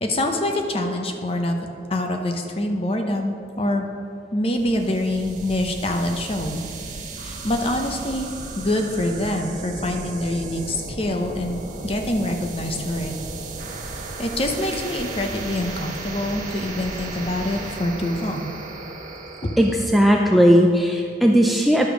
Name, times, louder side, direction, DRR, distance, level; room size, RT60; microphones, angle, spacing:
voice 1, 0.0-1.6 1.9-3.8 4.3-6.6 7.2-8.3 8.6-13.1 14.2-18.5, left 1 dB, 30° left, 4 dB, 0.8 m, -25 dB
sound 1, 4.5-19.8, right 2 dB, 45° right, 1.0 m, -35 dB
voice 2, 19.6-21.9, equal, ahead, 0 dB, 0.4 m, -17 dB
11.0 x 5.1 x 6.1 m, 2.5 s
head